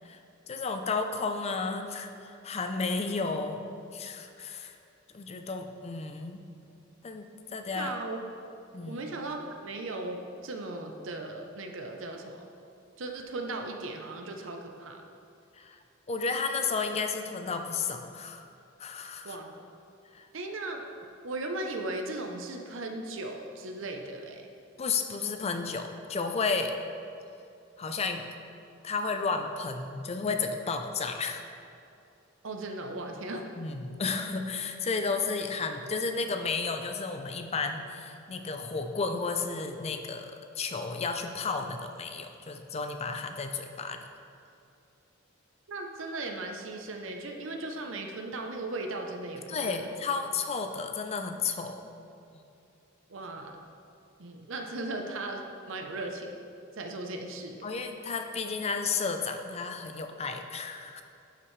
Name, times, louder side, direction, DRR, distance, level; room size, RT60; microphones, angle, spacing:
voice 1, 0.5-3.6 3.9-4.8 5.1-6.4 7.0-7.9 8.7-9.0 15.5-15.8 16.1-18.5 18.8-19.4 20.1-20.3 24.8-26.7 27.8-28.2 28.8-31.4 33.6-44.0 49.5-51.9 57.6-61.0, left 4 dB, 30° left, 6 dB, 0.5 m, -32 dB
voice 2, 7.7-8.2 8.9-12.5 13.0-15.0 19.2-19.5 20.3-20.8 21.2-24.5 32.4-33.5 45.7-49.8 53.1-53.6 54.2-56.4 56.8-57.7, right 2 dB, 70° right, 3 dB, 0.7 m, -37 dB
11.0 x 6.1 x 3.2 m, 2.6 s
head